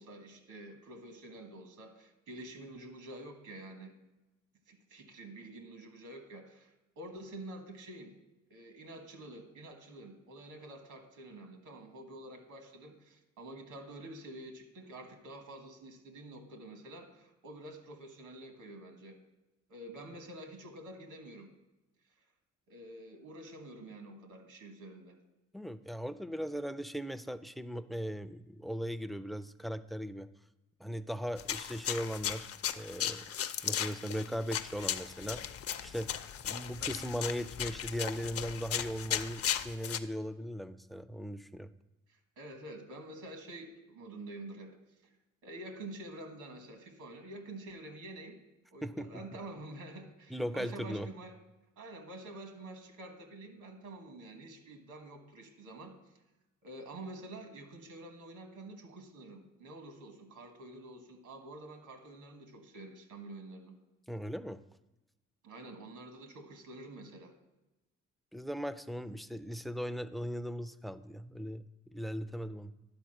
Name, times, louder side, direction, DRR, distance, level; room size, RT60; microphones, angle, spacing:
voice 1, 0.0-3.9 4.7-8.1 8.5-19.2 19.7-21.5 22.7-25.2 42.1-44.7 45.0-45.1 45.4-48.4 48.7-51.3 51.8-56.2 56.6-63.8 65.4-67.3, right 1 dB, 75° right, 5 dB, 1.5 m, -48 dB
voice 2, 25.5-30.3 30.8-32.5 32.7-33.2 33.6-36.1 36.4-41.7 48.8-49.2 50.3-51.1 64.1-64.6 68.3-72.7, equal, ahead, 13 dB, 0.3 m, -38 dB
sound 1, 31.4-40.0, left 9 dB, 50° left, 0.5 m, -36 dB
10.5 x 4.2 x 6.5 m, 1.0 s
cardioid pair, 90°, 30 cm